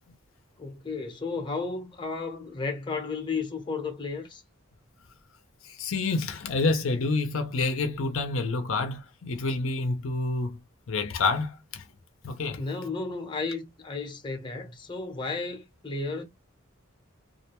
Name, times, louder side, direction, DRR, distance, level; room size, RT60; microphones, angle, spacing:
voice 1, 0.6-4.4 12.6-16.2, left 4 dB, 25° left, 0.7 m, -33 dB
voice 2, 5.6-10.6 10.9-11.8 12.2-12.6, left 3 dB, 70° left, 0.5 m, -28 dB
2.4 x 2.2 x 2.9 m
head